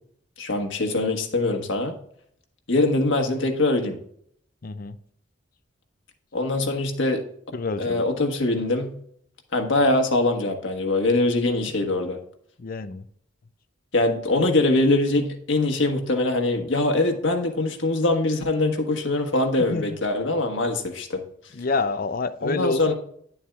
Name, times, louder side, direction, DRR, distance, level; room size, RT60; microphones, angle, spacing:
voice 1, 0.4-1.9 2.7-4.0 6.3-7.2 7.8-8.9 9.5-12.2 13.9-21.2 22.4-22.9, left 2 dB, 80° left, 1.4 m, -23 dB
voice 2, 4.6-5.0 7.5-8.0 12.6-13.0 19.6-20.0 21.5-22.9, left 3 dB, 50° left, 0.5 m, -28 dB
10.5 x 7.1 x 2.4 m
head